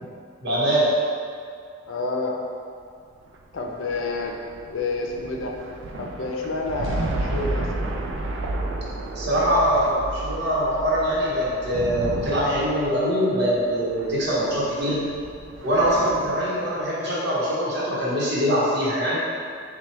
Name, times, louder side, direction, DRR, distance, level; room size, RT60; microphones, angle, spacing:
voice 1, 0.4-0.9 9.1-15.1 15.6-19.2, equal, 60° right, -7 dB, 1.0 m, -23 dB
voice 2, 1.9-2.4 3.5-4.4 4.7-5.5 6.0-7.7, left 3 dB, 90° left, 1 dB, 0.5 m, -28 dB
sound 1, 3.2-16.8, right 2 dB, 75° right, 0.4 m, -32 dB
5.8 x 2.3 x 3.3 m, 2.2 s
head